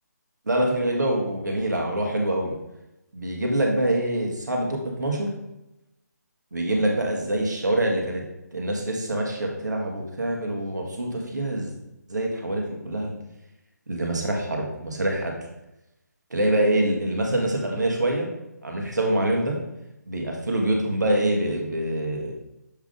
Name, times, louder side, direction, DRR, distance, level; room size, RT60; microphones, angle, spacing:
voice 1, 0.5-2.5 3.1-5.3 6.5-8.2 8.5-11.7 12.1-13.2 13.9-15.3 16.3-18.3 18.6-19.6 20.1-22.3, right 1 dB, 80° right, 0 dB, 1.5 m, -25 dB
7.2 x 3.7 x 3.7 m, 0.91 s
figure-of-eight pair, 150°, 10 cm